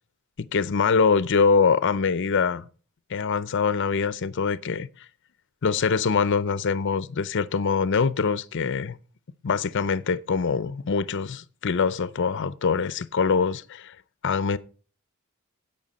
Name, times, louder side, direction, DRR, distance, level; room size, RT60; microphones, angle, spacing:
voice 1, 0.4-2.7 3.1-5.1 5.6-9.0 9.4-14.0 14.2-14.6, left 5 dB, 55° left, 0.5 m, -24 dB
16.0 x 5.7 x 4.1 m
head